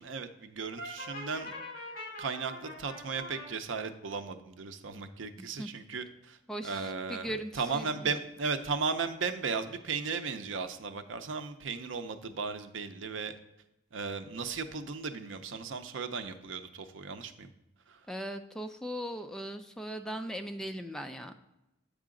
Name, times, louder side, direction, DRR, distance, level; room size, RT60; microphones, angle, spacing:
voice 1, 0.0-1.6 2.2-13.3 13.9-17.5 17.9-18.1, right 5 dB, 85° right, 9 dB, 0.6 m, -36 dB
Brass instrument, 0.8-3.5, left 1 dB, 50° left, 2.4 m, -43 dB
voice 2, 5.4-5.7 6.5-8.1 18.1-21.3, equal, 5° left, 6 dB, 0.3 m, -39 dB
8.3 x 4.9 x 3.7 m, 0.89 s
head